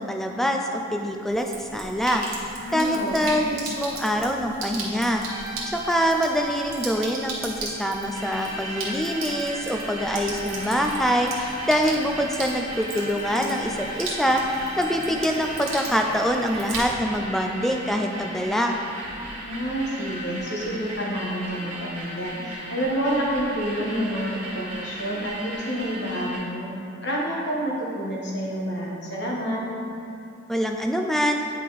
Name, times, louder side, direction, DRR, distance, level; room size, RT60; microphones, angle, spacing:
voice 1, 0.0-18.8 30.5-31.4, equal, ahead, 2 dB, 0.3 m, -25 dB
Sink (filling or washing), 1.3-17.2, right 3 dB, 85° right, 1.5 m, -37 dB
voice 2, 2.6-3.4 19.4-26.7 27.0-29.6, equal, 55° left, -4 dB, 1.3 m, -28 dB
sound 1, 5.1-16.2, right 1 dB, 20° left, 0.7 m, -39 dB
sound 2, 8.1-26.4, right 1 dB, 35° right, 1.5 m, -37 dB
9.1 x 4.3 x 4.0 m, 2.6 s
head